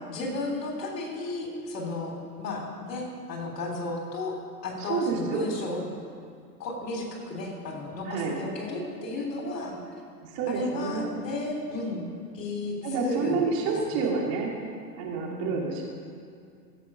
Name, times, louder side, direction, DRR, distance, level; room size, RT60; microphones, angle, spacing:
voice 1, 0.1-4.4 4.6-5.9 6.6-9.7 10.5-12.0 12.3-13.5 13.9-14.1 15.4-15.6, left 2 dB, 75° left, 1 dB, 3.4 m, -33 dB
voice 2, 4.8-5.4 8.0-8.3 10.3-11.1 12.8-14.5 15.0-15.8, right 4 dB, 50° right, -1 dB, 3.0 m, -28 dB
15.5 x 7.9 x 5.5 m, 2.3 s
hypercardioid pair, 100°, 48 cm